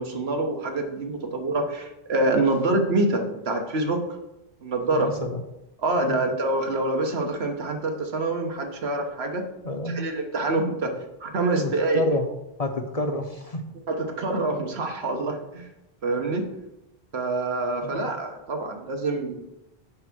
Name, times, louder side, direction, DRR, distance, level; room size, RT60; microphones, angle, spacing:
voice 1, 0.0-4.0 4.6-5.1 5.8-9.4 9.9-10.9 11.2-12.0 13.9-15.6 16.0-16.5 17.1-19.4, right 2 dB, 80° right, 4 dB, 1.4 m, -26 dB
voice 2, 4.9-5.4 5.9-6.3 9.6-10.1 11.6-12.3 12.6-13.6 17.8-18.1, left 1 dB, 40° left, 5 dB, 0.7 m, -29 dB
9.5 x 3.5 x 6.2 m, 0.89 s
omnidirectional pair, 1.1 m